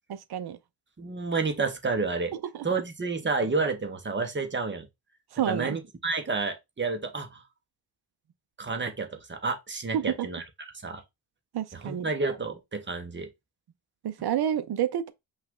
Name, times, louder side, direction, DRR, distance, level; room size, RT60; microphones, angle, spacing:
voice 1, 0.1-0.6 2.3-2.7 5.3-5.8 9.9-10.3 11.5-12.1 14.0-15.1, right 10 dB, 55° right, 0.7 m, -29 dB
voice 2, 1.0-2.3 2.6-4.9 5.5-7.4 8.6-10.4 10.8-11.0 11.7-13.3, right 4 dB, 25° right, 1.0 m, -30 dB
5.6 x 2.5 x 3.7 m
wide cardioid pair, 145°, 48 cm